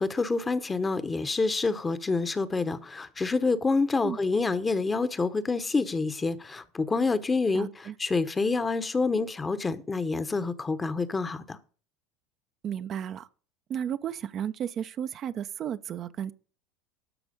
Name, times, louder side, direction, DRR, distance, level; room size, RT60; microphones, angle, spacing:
voice 1, 0.0-11.6, left 3 dB, 20° left, 1.0 m, -27 dB
voice 2, 7.5-8.0 12.6-13.3 13.7-16.3, right 9 dB, 45° right, 0.6 m, -33 dB
13.0 x 6.0 x 5.2 m
hypercardioid pair, 85°, 0 cm